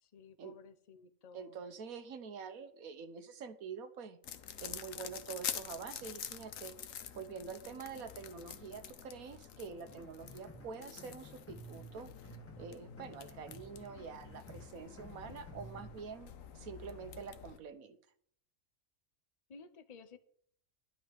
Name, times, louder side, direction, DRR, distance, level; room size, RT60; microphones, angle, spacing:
voice 1, 0.0-1.6 19.5-20.2, left 5 dB, 35° left, 11 dB, 0.8 m, -55 dB
voice 2, 1.3-4.2 4.6-12.1 12.6-18.0, right 6 dB, 75° right, 9 dB, 1.5 m, -46 dB
sound 1, 4.2-17.6, left 9 dB, 70° left, 1.2 m, -47 dB
sound 2, 9.8-16.0, right 2 dB, 10° left, 1.8 m, -54 dB
11.5 x 5.7 x 9.1 m, 0.62 s
omnidirectional pair, 1.5 m